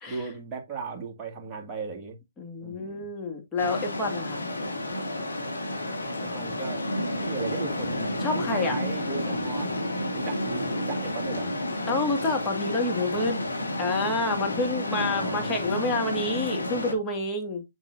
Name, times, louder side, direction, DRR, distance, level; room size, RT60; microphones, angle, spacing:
voice 1, 0.1-2.2 2.6-3.1 6.2-6.8 7.2-9.8 10.1-11.5 15.0-15.7, right 5 dB, 15° right, 2.1 m, -36 dB
voice 2, 2.4-4.4 8.2-8.8 11.9-13.5 13.8-17.6, left 2 dB, 15° left, 2.1 m, -28 dB
sound 1, 3.6-16.9, left 1 dB, 80° left, 2.7 m, -31 dB
7.5 x 7.3 x 2.7 m
figure-of-eight pair, 135°, 0 cm